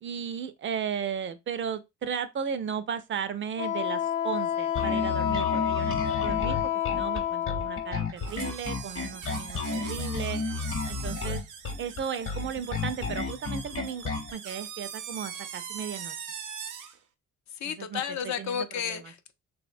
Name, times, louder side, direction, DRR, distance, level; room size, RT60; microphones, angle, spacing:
voice 1, 0.0-6.6 6.9-10.4 10.9-11.4 11.8-16.2 17.6-18.0 18.4-19.0, right 7 dB, 40° right, 0.4 m, -35 dB
Wind instrument woodwind instrument, 3.6-8.0, left 10 dB, 90° left, 0.9 m, -29 dB
Bass guitar, 4.8-14.3, left 4 dB, 45° left, 0.8 m, -32 dB
sound 1, 8.2-17.0, right 7 dB, 85° right, 0.6 m, -41 dB
voice 2, 17.5-19.3, left 8 dB, 65° left, 0.5 m, -32 dB
2.9 x 2.1 x 2.5 m
cardioid pair, 90°, 30 cm